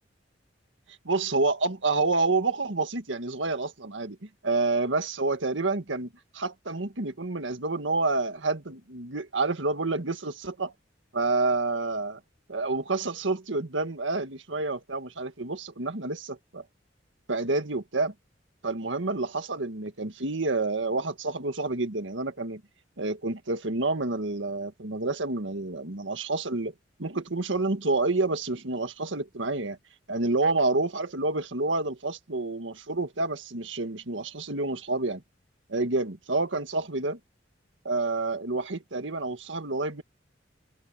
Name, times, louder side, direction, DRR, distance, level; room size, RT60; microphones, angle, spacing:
voice 1, 1.0-4.2 4.4-10.7 11.1-12.2 12.5-16.6 17.3-18.1 18.6-22.6 23.0-26.7 27.0-29.8 30.1-35.2 35.7-37.2 37.8-40.0, right 3 dB, 85° right, 1.8 m, -28 dB
head